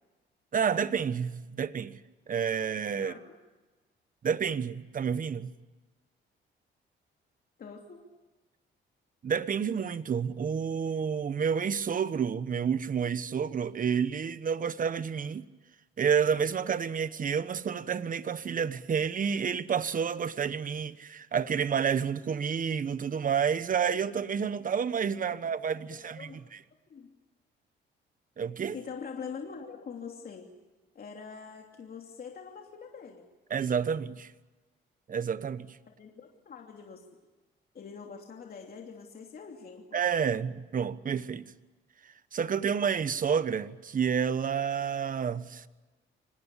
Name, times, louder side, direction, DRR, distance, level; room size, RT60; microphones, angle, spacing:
voice 1, 0.5-2.0 2.3-3.1 4.2-5.5 9.2-15.5 16.0-26.6 28.4-28.8 33.5-34.3 35.1-35.8 39.9-41.5 42.3-45.6, right 7 dB, 45° right, 1.2 m, -29 dB
voice 2, 7.6-8.0 25.8-26.4 26.9-27.1 28.7-30.5 30.9-33.3 35.8-37.0 37.7-40.0, left 6 dB, 50° left, 3.0 m, -44 dB
25.5 x 19.5 x 8.4 m
cardioid pair, 90°, 20 cm